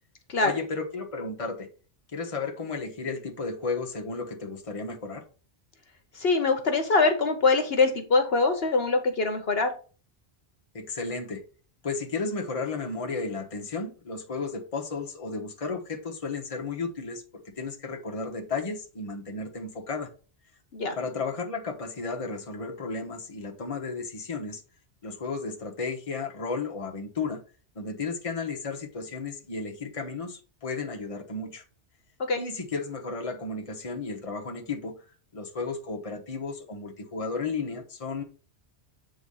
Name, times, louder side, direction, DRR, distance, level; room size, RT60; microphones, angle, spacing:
voice 1, 0.4-1.7 2.1-5.2 10.7-11.4 11.8-20.1 20.9-24.6 25.0-27.4 27.7-31.6 32.4-35.0 35.3-38.2, left 4 dB, 30° left, 1.1 m, -33 dB
voice 2, 6.1-9.7 20.7-21.0 32.2-32.4, left 3 dB, 60° left, 1.2 m, -23 dB
8.0 x 3.8 x 5.5 m
omnidirectional pair, 1.2 m